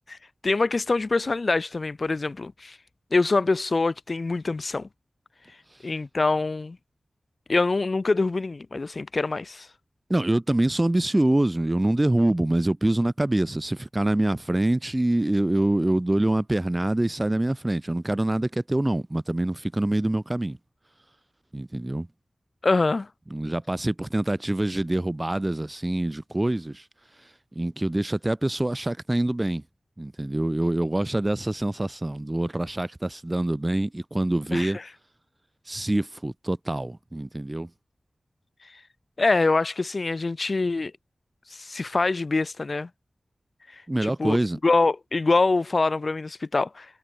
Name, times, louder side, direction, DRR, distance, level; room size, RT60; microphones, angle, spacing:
voice 1, 0.4-2.8 3.1-4.9 5.8-6.8 7.5-9.7 22.6-23.1 34.5-34.7 39.2-40.9 41.5-42.9 44.0-44.4 44.6-46.9, left 3 dB, 55° left, 1.3 m, -24 dB
voice 2, 10.1-20.6 21.5-22.1 23.3-26.8 27.6-29.6 30.0-34.8 35.7-37.7 43.9-44.6, right 1 dB, 25° right, 0.5 m, -25 dB
cardioid pair, 50°, 0 cm